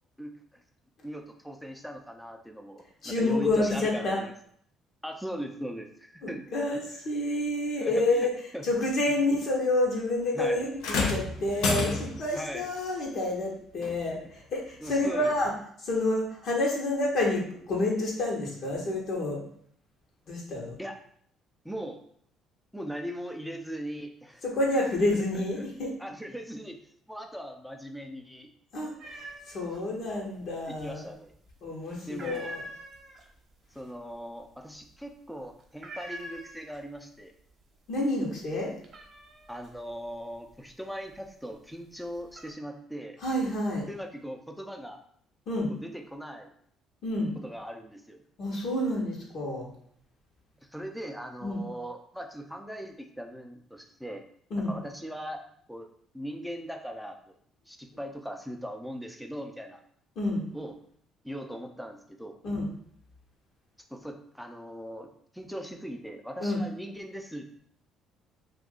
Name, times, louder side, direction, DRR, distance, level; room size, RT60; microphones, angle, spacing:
voice 1, 1.0-4.3 5.0-6.4 7.8-8.6 10.3-10.6 12.3-12.7 14.8-15.3 20.8-21.0 21.6-22.0 22.7-24.4 25.1-25.2 25.5-25.7 26.0-26.8 27.1-28.5 30.7-31.3 32.1-32.6 33.7-37.3 39.5-43.2 43.9-45.0 45.7-46.5 47.4-48.2 50.6-54.2 54.7-55.4 55.7-55.9 56.1-57.4 57.7-59.8 60.5-60.8 61.2-62.4 63.9-65.1 65.3-67.6, equal, ahead, 4 dB, 0.5 m, -39 dB
voice 2, 3.0-4.2 6.2-8.3 8.6-15.5 15.8-19.4 20.3-20.7 24.4-25.9 28.7-31.0 31.6-32.6 37.9-38.7 43.2-43.9 45.5-45.7 47.0-47.3 48.4-49.7 51.4-51.6 54.5-54.7 60.2-60.4 62.4-62.7 66.4-66.6, left 2 dB, 60° left, -2 dB, 1.0 m, -29 dB
sound 1, 10.8-12.4 13.8-14.0 14.8-14.9, left 3 dB, 75° left, 0.5 m, -29 dB
sound 2, 29.0-29.8 30.1-30.9 31.3-31.6 32.0-37.1 37.4-37.9 38.3-41.4 41.9-42.5, right 1 dB, 45° right, 0.8 m, -45 dB
2.6 x 2.4 x 3.8 m, 0.64 s
supercardioid pair, 65°, 0 cm